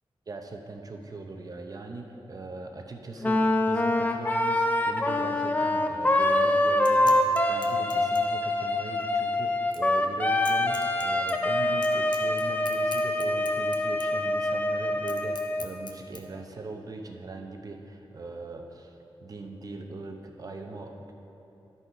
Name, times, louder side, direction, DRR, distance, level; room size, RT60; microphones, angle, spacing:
voice 1, 0.3-21.1, right 3 dB, 40° right, 3 dB, 0.7 m, -40 dB
Wind instrument woodwind instrument, 3.2-15.7, left 1 dB, 15° left, 0.4 m, -25 dB
sound 1, 6.7-16.2, left 3 dB, 50° left, 0.7 m, -47 dB
12.5 x 4.2 x 4.7 m, 2.9 s
wide cardioid pair, 155°, 10 cm